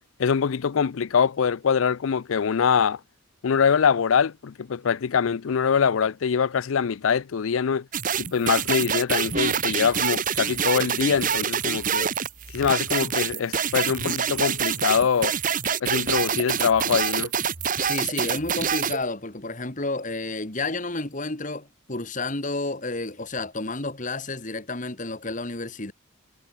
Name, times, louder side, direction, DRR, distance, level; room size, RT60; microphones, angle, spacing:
voice 1, 0.2-3.0 3.4-7.9 8.2-12.1 12.5-15.3 15.8-17.3, left 6 dB, 80° left, 0.5 m, -23 dB
sound 1, 7.9-19.0, right 7 dB, 40° right, 1.2 m, -26 dB
voice 2, 17.9-25.9, left 2 dB, 40° left, 2.2 m, -31 dB
head